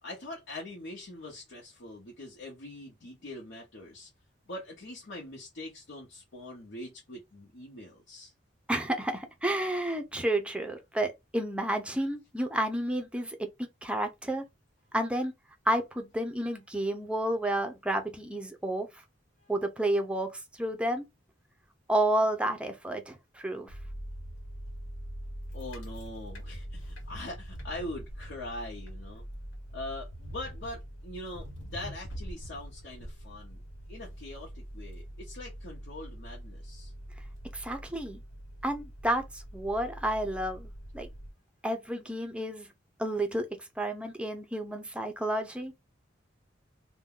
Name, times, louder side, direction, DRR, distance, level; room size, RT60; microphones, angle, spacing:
voice 1, 0.0-4.1 4.5-8.3 19.4-19.5 25.5-29.2 29.7-33.6 33.9-36.9, left 1 dB, 65° left, 0.8 m, -42 dB
voice 2, 8.7-14.4 14.9-15.3 15.7-18.9 19.5-21.1 21.9-23.7 37.5-38.2 38.6-40.7 40.9-41.1 41.6-42.7 43.0-45.7, right 1 dB, 5° right, 0.5 m, -31 dB
sound 1, 23.7-41.3, equal, 90° left, 1.1 m, -43 dB
2.6 x 2.2 x 3.7 m
head